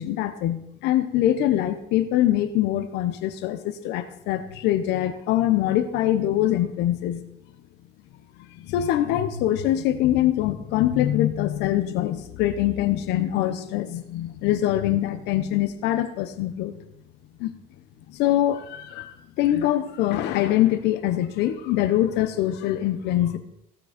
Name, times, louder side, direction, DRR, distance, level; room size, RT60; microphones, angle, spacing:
voice 1, 0.0-7.2 8.6-16.8 17.4-17.5 18.1-23.4, left 13 dB, 90° left, 10 dB, 1.1 m, -23 dB
16.5 x 6.5 x 4.4 m, 0.78 s
cardioid pair, 110°, 17 cm